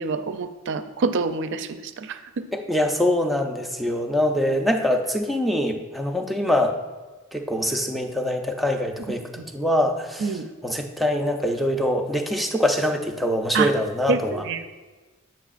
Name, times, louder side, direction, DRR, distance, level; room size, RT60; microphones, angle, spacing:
voice 1, 0.0-2.5 9.4-9.5 10.2-10.5 13.5-13.7 14.1-14.7, right 4 dB, 60° right, 10 dB, 0.4 m, -26 dB
voice 2, 2.5-6.8 7.3-14.4, left 1 dB, ahead, 3 dB, 0.4 m, -24 dB
8.0 x 6.3 x 2.5 m, 1.3 s
head